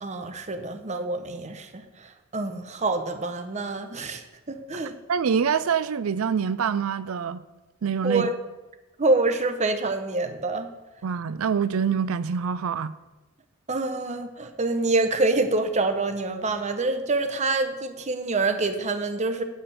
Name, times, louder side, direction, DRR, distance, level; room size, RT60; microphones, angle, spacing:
voice 1, 0.0-4.2 4.5-5.0 8.0-8.3 9.0-10.7 13.7-19.4, right 3 dB, 35° right, 0.8 m, -26 dB
voice 2, 5.1-7.4 7.8-8.3 11.0-12.9, right 6 dB, 85° right, 0.5 m, -25 dB
9.6 x 5.1 x 7.1 m
head